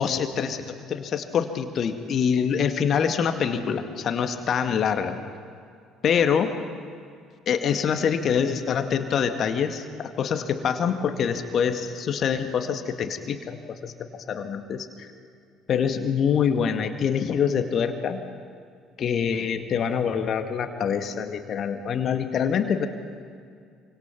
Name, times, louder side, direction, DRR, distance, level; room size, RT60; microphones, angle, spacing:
voice 1, 0.0-5.2 6.0-6.5 7.5-15.1 15.7-18.2 19.0-22.9, left 7 dB, 45° left, 7 dB, 2.1 m, -25 dB
27.5 x 25.0 x 6.0 m, 2.3 s
figure-of-eight pair, 55°, 0 cm